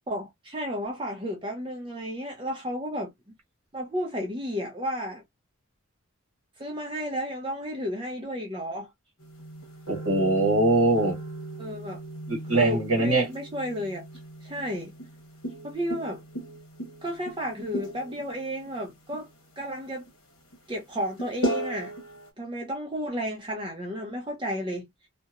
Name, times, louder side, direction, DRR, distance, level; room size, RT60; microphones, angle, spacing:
voice 1, 0.1-3.1 3.7-5.2 6.6-8.9 11.6-12.0 12.5-14.0 14.4-14.9 15.6-16.2 17.0-19.3 19.6-20.1 20.7-21.9 22.4-24.9, equal, 20° right, 0.5 m, -32 dB
sound 1, 9.2-22.3, right 1 dB, 85° left, 1.1 m, -37 dB
voice 2, 9.9-11.2 12.3-13.3, right 2 dB, 70° right, 1.1 m, -22 dB
2.8 x 2.1 x 2.3 m
head